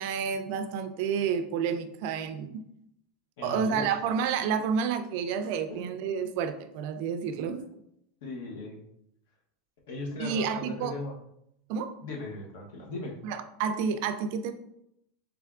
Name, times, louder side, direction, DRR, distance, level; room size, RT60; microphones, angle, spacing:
voice 1, 0.0-2.6 3.4-7.7 10.2-11.0 11.7-11.9 13.2-14.5, right 6 dB, 50° right, 9 dB, 0.3 m, -30 dB
voice 2, 3.4-4.0 5.7-5.9 8.2-8.8 9.9-11.1 12.0-13.2, left 2 dB, 70° left, 0 dB, 0.9 m, -38 dB
3.5 x 3.3 x 2.4 m, 0.77 s
supercardioid pair, 170°, 0 cm